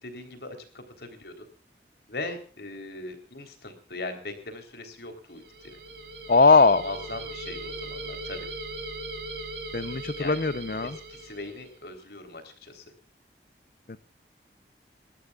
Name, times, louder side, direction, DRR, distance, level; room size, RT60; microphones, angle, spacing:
voice 1, 0.0-1.5 2.1-5.8 6.8-8.5 10.2-10.4 10.8-12.9, left 2 dB, 70° left, 6 dB, 3.8 m, -40 dB
sound 1, 5.3-11.7, right 2 dB, 70° right, 4.1 m, -39 dB
voice 2, 6.3-6.8 9.7-11.0 13.9-14.0, left 4 dB, 55° left, 12 dB, 0.6 m, -20 dB
29.5 x 13.0 x 2.4 m, 0.37 s
head